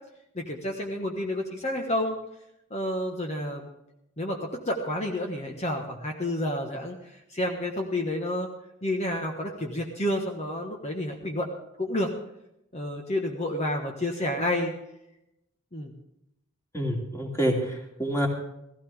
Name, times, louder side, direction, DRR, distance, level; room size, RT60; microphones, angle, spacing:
voice 1, 0.3-2.2 2.7-3.7 4.2-8.5 8.8-11.5 11.8-12.1 12.7-14.7 15.7-15.9, left 1 dB, 30° left, 1 dB, 1.4 m, -30 dB
voice 2, 16.7-18.3, right 1 dB, 10° left, 0 dB, 2.7 m, -27 dB
16.5 x 16.0 x 3.6 m, 0.83 s
head